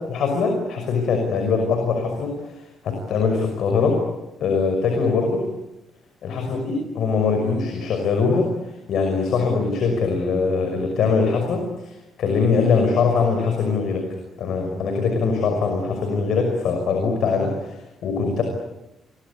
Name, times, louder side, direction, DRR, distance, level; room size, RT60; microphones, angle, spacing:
voice 1, 0.1-2.3 2.8-4.0 4.4-5.5 6.2-8.5 8.9-11.9 12.2-14.1 14.4-18.4, left 4 dB, 70° left, 4 dB, 5.7 m, -22 dB
28.5 x 24.0 x 8.5 m, 0.97 s
cardioid pair, 90°, 0 cm